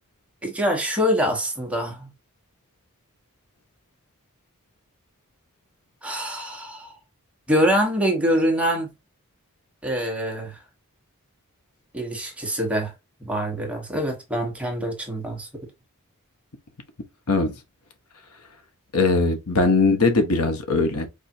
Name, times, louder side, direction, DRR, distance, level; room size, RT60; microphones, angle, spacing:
voice 1, 0.4-2.1 6.0-7.0 7.5-8.9 9.8-10.6 11.9-12.9 13.2-15.5, equal, 5° right, 1.3 m, -24 dB
voice 2, 17.3-17.6 18.9-21.1, left 3 dB, 80° left, 1.3 m, -20 dB
4.9 x 3.6 x 2.7 m
head